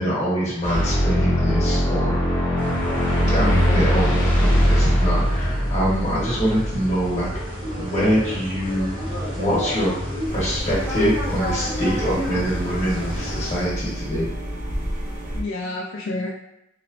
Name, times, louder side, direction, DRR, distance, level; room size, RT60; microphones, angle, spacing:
voice 1, 0.0-2.2 3.3-7.3 7.8-8.9 9.4-9.9 10.3-14.3, equal, 35° left, -7 dB, 1.1 m, -24 dB
sound 1, 0.6-7.3, equal, 15° left, 0.7 m, -20 dB
sound 2, 2.6-13.6, equal, 65° right, 0.9 m, -31 dB
voice 2, 3.4-3.8 15.3-16.4, left 2 dB, 75° left, -2 dB, 0.4 m, -29 dB
sound 3, 10.3-15.4, equal, 35° right, 0.5 m, -30 dB
2.9 x 2.1 x 2.5 m, 0.85 s
head